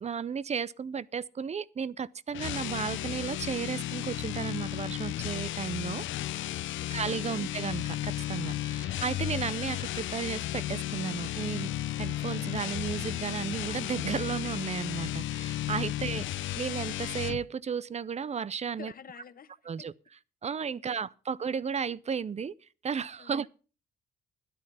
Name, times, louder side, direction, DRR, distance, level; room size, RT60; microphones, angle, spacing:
voice 1, 0.0-6.1 6.9-18.9 19.7-19.9 20.4-22.5 22.8-23.5, right 6 dB, 35° right, 0.6 m, -34 dB
sound 1, 2.3-17.4, left 14 dB, 75° left, 0.6 m, -34 dB
voice 2, 18.8-19.5 19.8-19.9 20.7-21.0 23.2-23.4, left 7 dB, 45° left, 1.3 m, -50 dB
13.0 x 10.0 x 5.5 m
cardioid pair, 90°, 20 cm